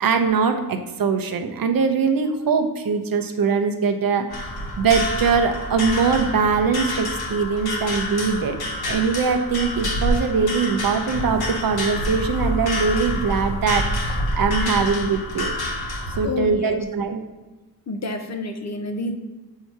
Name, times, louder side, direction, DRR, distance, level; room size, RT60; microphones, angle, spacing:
voice 1, 0.0-4.5 4.8-8.6 8.9-15.5 16.2-17.2, right 5 dB, 60° right, 6 dB, 0.7 m, -22 dB
sound 1, 4.3-16.2, left 1 dB, 65° left, 1.1 m, -27 dB
voice 2, 16.2-16.8 17.9-19.2, left 3 dB, 45° left, 7 dB, 0.5 m, -28 dB
7.6 x 2.8 x 4.6 m, 1.2 s
wide cardioid pair, 165°, 40 cm